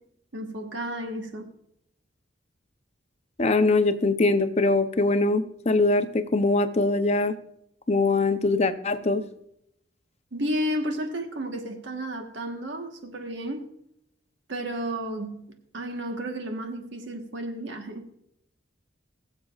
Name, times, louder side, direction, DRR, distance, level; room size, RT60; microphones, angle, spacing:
voice 1, 0.3-1.5 10.3-13.7 14.5-15.4 15.7-18.0, right 1 dB, 70° right, 1.3 m, -32 dB
voice 2, 3.4-7.3 7.9-9.2, left 2 dB, 35° left, 0.6 m, -22 dB
20.5 x 7.5 x 2.4 m
head